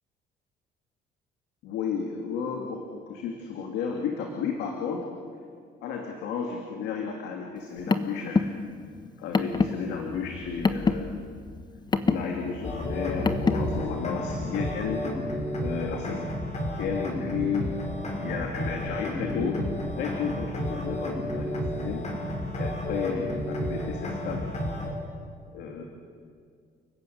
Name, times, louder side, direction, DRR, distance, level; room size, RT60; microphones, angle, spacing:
voice 1, 1.6-5.1 5.8-8.5 9.2-11.1 12.1-15.0 15.6-16.2 16.8-17.7 18.2-19.6 20.0-22.1 22.6-24.5 25.5-25.8, left 6 dB, 85° left, 2 dB, 2.6 m, -33 dB
Car, 7.6-13.8, left 4 dB, 25° left, 1.2 m, -28 dB
sound 1, 12.6-24.9, left 1 dB, 40° left, 5.8 m, -31 dB
29.5 x 15.0 x 9.4 m, 2.1 s
cardioid pair, 110°, 17 cm